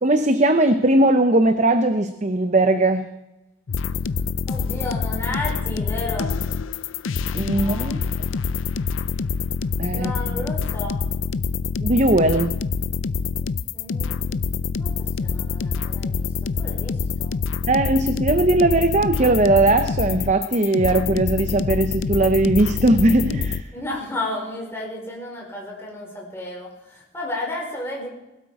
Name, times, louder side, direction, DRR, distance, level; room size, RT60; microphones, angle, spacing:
voice 1, 0.0-3.1 7.3-8.0 9.8-10.4 11.8-12.5 17.7-23.6, right 2 dB, 35° right, 9 dB, 0.7 m, -19 dB
sound 1, 3.7-23.6, left 5 dB, 90° left, 0.5 m, -26 dB
voice 2, 4.5-6.3 7.5-7.9 9.9-11.0 13.7-14.4 14.8-14.9 15.2-16.3 16.6-17.3 23.7-28.1, left 2 dB, 15° left, -3 dB, 4.9 m, -32 dB
20.0 x 12.5 x 4.8 m, 0.96 s
head